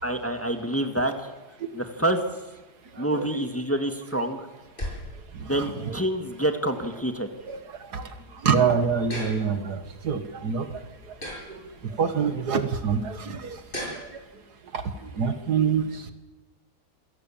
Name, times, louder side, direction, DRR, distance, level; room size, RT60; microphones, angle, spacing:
voice 1, 0.0-1.3 1.7-2.2 3.0-4.5 5.4-7.3, right 1 dB, 10° left, 5 dB, 1.6 m, -27 dB
voice 2, 2.9-3.4 5.3-6.0 7.4-11.2 11.5-13.6 13.9-14.2 14.7-16.1, right 6 dB, 70° right, 9 dB, 2.0 m, -27 dB
sound 1, 3.6-14.3, equal, 30° left, 7.6 m, -42 dB
27.0 x 17.5 x 7.2 m, 1.2 s
omnidirectional pair, 1.8 m